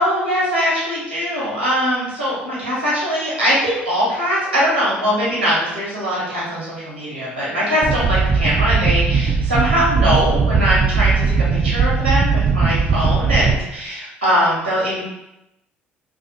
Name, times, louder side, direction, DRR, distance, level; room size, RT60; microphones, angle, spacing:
voice 1, 0.0-15.0, equal, 90° right, -6 dB, 0.7 m, -21 dB
sound 1, 7.8-13.5, right 5 dB, 30° right, 0.3 m, -18 dB
2.7 x 2.4 x 2.6 m, 0.90 s
figure-of-eight pair, 50°, 6 cm